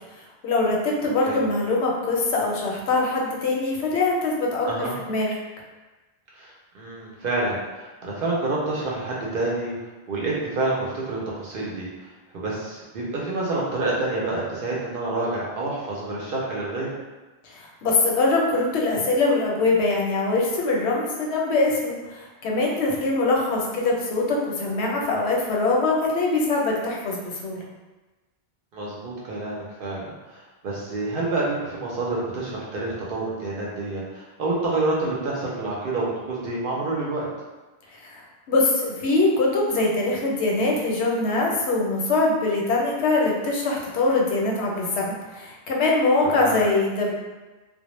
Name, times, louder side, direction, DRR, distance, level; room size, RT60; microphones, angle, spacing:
voice 1, 0.4-5.3 17.5-27.6 38.0-47.1, left 3 dB, 85° left, -2 dB, 0.8 m, -23 dB
voice 2, 6.3-9.8 10.1-16.9 28.7-37.3 46.2-46.6, right 2 dB, 60° right, -5 dB, 0.7 m, -28 dB
2.0 x 2.0 x 3.0 m, 1.2 s
omnidirectional pair, 1.1 m